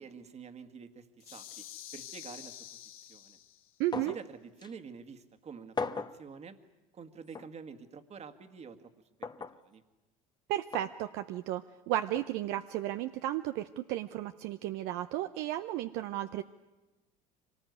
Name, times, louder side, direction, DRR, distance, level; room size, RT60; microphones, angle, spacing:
voice 1, 0.0-1.6 1.9-2.8 3.1-3.4 3.9-6.6 6.9-8.9 9.5-9.8, right 6 dB, 35° right, 9 dB, 1.9 m, -48 dB
sound 1, 1.2-3.8, left 11 dB, 80° left, 1.4 m, -48 dB
voice 2, 3.8-4.2 10.5-16.4, right 14 dB, 65° right, 9 dB, 0.7 m, -34 dB
sound 2, 3.9-4.3 4.6-4.7 5.8-6.2 7.3-7.5 9.2-9.6 10.7-10.9 12.2-12.3, left 4 dB, 25° left, 1.1 m, -37 dB
24.5 x 19.0 x 9.5 m, 1.1 s
hypercardioid pair, 80°, 19 cm